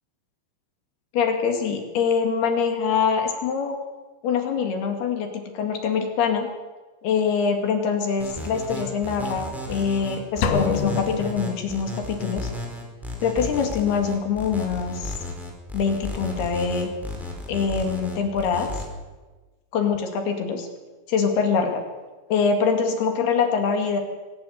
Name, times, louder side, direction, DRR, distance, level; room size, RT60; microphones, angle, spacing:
voice 1, 1.1-3.8 4.2-6.5 7.0-12.5 13.2-15.2 15.7-16.9 17.5-18.7 19.7-20.7 21.1-21.8 22.3-24.0, left 6 dB, 60° left, 4 dB, 3.8 m, -24 dB
sound 1, 8.2-18.8, left 2 dB, ahead, 4.0 m, -34 dB
sound 2, 10.4-12.2, left 7 dB, 85° left, 4.1 m, -27 dB
23.5 x 12.0 x 9.4 m, 1.2 s
omnidirectional pair, 5.8 m